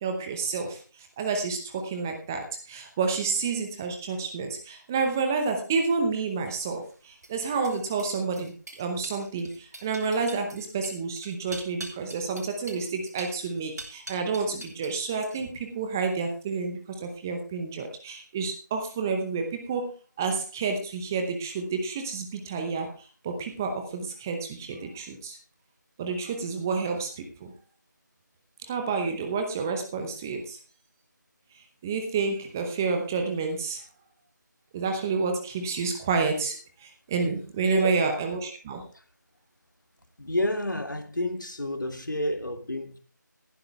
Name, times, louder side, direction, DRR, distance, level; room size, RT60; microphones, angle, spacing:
voice 1, 0.0-19.9 20.2-25.4 26.0-27.5 28.6-30.6 31.5-33.8 34.7-38.8, right 4 dB, 10° right, 0.8 m, -29 dB
sound 1, 6.4-14.9 15.2-15.7, right 1 dB, 55° right, 3.6 m, -44 dB
voice 2, 37.6-38.0 38.9-39.0 40.2-43.0, left 1 dB, 75° left, 2.7 m, -29 dB
14.0 x 11.5 x 3.4 m
figure-of-eight pair, 165°, 10 cm